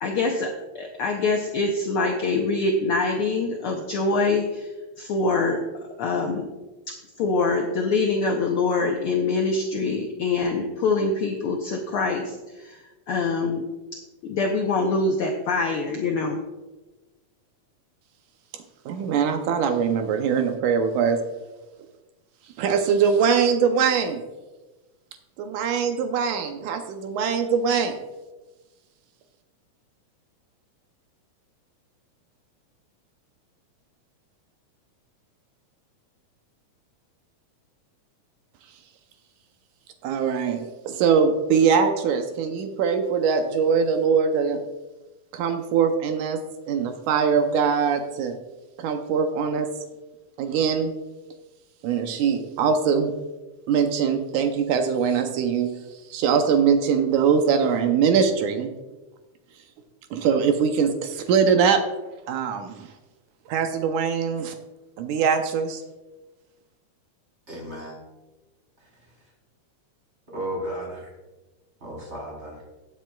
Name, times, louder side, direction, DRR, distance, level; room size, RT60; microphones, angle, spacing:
voice 1, 0.0-4.7 5.0-5.6 6.0-6.5 6.9-13.6 14.2-16.4, left 3 dB, 85° left, 2 dB, 1.2 m, -24 dB
voice 2, 18.9-21.2 22.6-24.2 25.4-28.0 40.0-44.6 45.3-46.4 46.7-48.4 48.8-49.7 50.4-50.9 51.8-53.1 53.7-58.7 60.1-61.8 62.3-62.9 63.5-64.6 65.0-65.8, right 6 dB, 80° right, 6 dB, 2.1 m, -22 dB
voice 3, 67.5-68.0 68.8-69.0 70.3-71.1 71.8-72.6, right 1 dB, 20° right, -3 dB, 3.6 m, -34 dB
19.5 x 7.5 x 2.3 m, 1.1 s
omnidirectional pair, 3.6 m